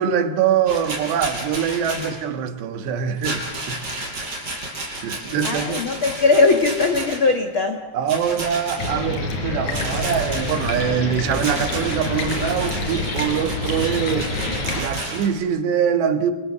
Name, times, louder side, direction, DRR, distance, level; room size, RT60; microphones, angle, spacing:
voice 1, 0.0-3.9 5.0-5.8 7.9-14.3 14.8-16.3, right 8 dB, 80° right, 3.8 m, -23 dB
Rattle, 0.7-2.2 3.2-7.3 8.1-8.9 9.7-10.8 11.3-15.3, right 1 dB, 25° right, 5.8 m, -32 dB
voice 2, 5.4-7.9, left 3 dB, 65° left, 1.2 m, -19 dB
sound 1, 8.8-14.8, left 2 dB, 45° left, 5.2 m, -27 dB
29.0 x 27.0 x 6.9 m
omnidirectional pair, 4.8 m